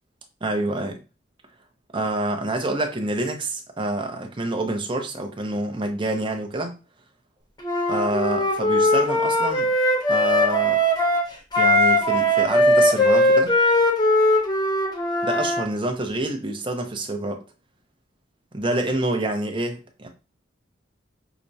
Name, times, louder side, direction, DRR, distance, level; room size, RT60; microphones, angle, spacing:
voice 1, 0.4-1.0 1.9-6.7 7.9-9.7 10.1-10.8 11.6-13.5 15.2-17.4 18.5-20.1, right 2 dB, 25° right, 0.6 m, -27 dB
Wind instrument woodwind instrument, 7.6-15.6, left 1 dB, 20° left, 0.9 m, -20 dB
5.7 x 2.1 x 2.6 m
head